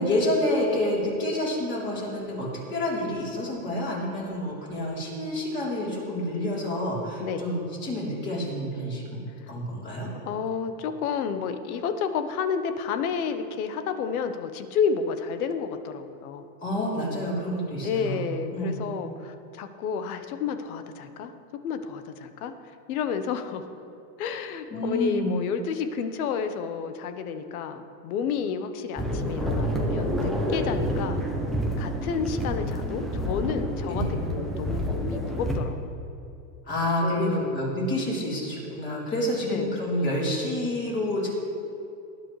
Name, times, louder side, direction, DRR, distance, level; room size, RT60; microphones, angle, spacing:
voice 1, 0.0-9.0 9.5-10.1 16.6-18.8 24.7-25.4 33.8-34.1 36.7-41.3, left 1 dB, 25° left, -5 dB, 3.5 m, -28 dB
voice 2, 10.2-16.4 17.8-21.3 21.6-22.5 22.9-23.6 24.2-31.2 31.8-34.0 34.3-35.8 37.0-37.6 39.4-39.8, left 6 dB, 65° left, 9 dB, 1.1 m, -30 dB
sound 1, 29.0-35.6, equal, ahead, 0.4 m, -28 dB
19.0 x 10.5 x 3.2 m, 2.6 s
supercardioid pair, 155°, 47 cm